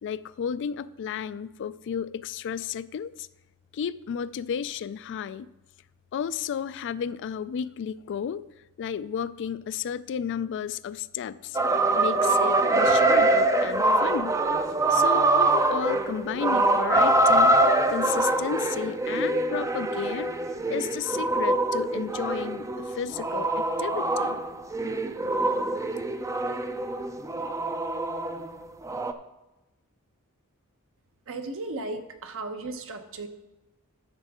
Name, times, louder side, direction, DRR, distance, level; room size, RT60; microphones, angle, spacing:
voice 1, 0.0-3.3 3.7-5.5 6.1-8.4 8.8-11.6 11.9-14.4 14.9-17.6 17.9-20.3 20.7-24.4, left 8 dB, 55° left, 16 dB, 0.3 m, -32 dB
sound 1, 11.5-28.5 28.8-29.1, right 2 dB, 15° right, 0.4 m, -24 dB
voice 2, 31.3-33.3, right 2 dB, 65° right, 7 dB, 0.9 m, -35 dB
11.5 x 7.1 x 3.6 m, 1.0 s
head